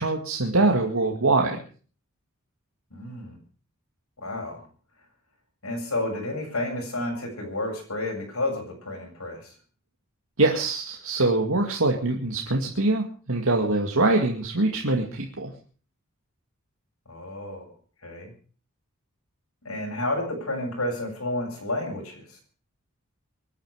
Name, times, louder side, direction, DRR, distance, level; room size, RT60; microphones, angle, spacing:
voice 1, 0.0-1.6 10.4-15.5, right 2 dB, 75° right, 1 dB, 2.2 m, -23 dB
voice 2, 2.9-3.4 4.2-4.7 5.6-9.5 17.1-17.7 18.0-18.3 19.6-22.4, left 1 dB, 90° left, 2 dB, 7.5 m, -31 dB
25.0 x 10.5 x 4.9 m, 0.41 s
head